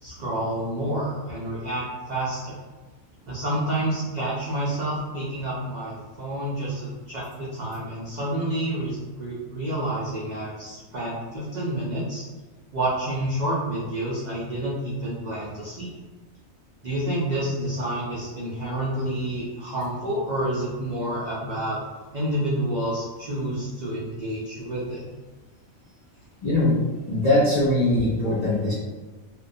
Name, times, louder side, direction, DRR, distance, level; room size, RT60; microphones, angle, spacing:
voice 1, 0.0-2.6 3.2-12.2 12.7-16.0 16.8-21.8 22.1-25.0, right 1 dB, 85° right, -7 dB, 0.3 m, -29 dB
voice 2, 26.4-26.8 27.1-28.7, left 1 dB, 70° left, -9 dB, 0.3 m, -21 dB
2.2 x 2.2 x 2.6 m, 1.3 s
omnidirectional pair, 1.4 m